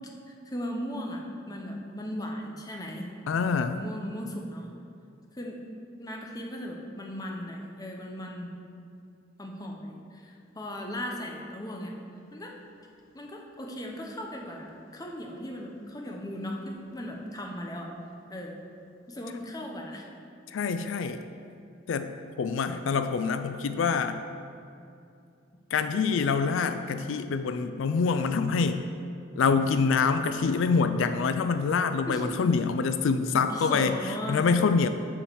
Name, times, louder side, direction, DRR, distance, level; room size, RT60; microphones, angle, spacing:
voice 1, 0.5-1.2 1.5-3.1 3.6-4.7 5.3-5.6 6.0-8.6 9.4-11.9 12.3-12.6 13.1-17.9 18.3-18.6 19.1-20.1 32.1-32.3 33.3-34.4, equal, 20° left, 1 dB, 0.8 m, -37 dB
voice 2, 3.3-3.8 20.5-21.2 21.9-22.1 22.4-24.2 25.7-28.8 29.3-33.9 34.3-34.9, left 5 dB, 85° left, 9 dB, 0.4 m, -25 dB
7.1 x 4.7 x 6.9 m, 2.6 s
head